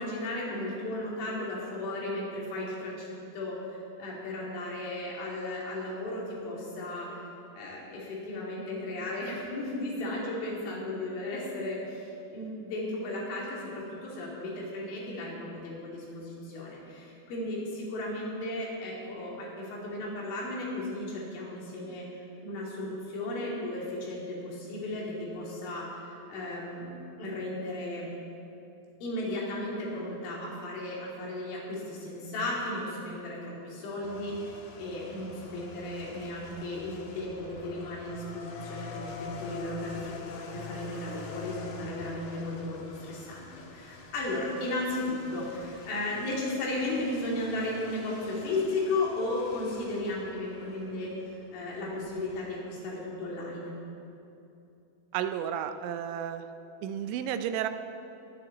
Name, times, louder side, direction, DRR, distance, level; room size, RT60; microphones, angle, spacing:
voice 1, 0.0-3.1 3.3-7.2 7.5-22.0 22.4-26.9 27.2-28.1 29.0-53.7, left 2 dB, 90° left, -5 dB, 5.1 m, -35 dB
sound 1, 34.0-52.4, left 5 dB, 70° left, 2.4 m, -46 dB
voice 2, 55.1-56.4 56.8-57.7, right 9 dB, 85° right, 9 dB, 2.9 m, -32 dB
22.0 x 10.0 x 4.1 m, 2.8 s
omnidirectional pair, 5.3 m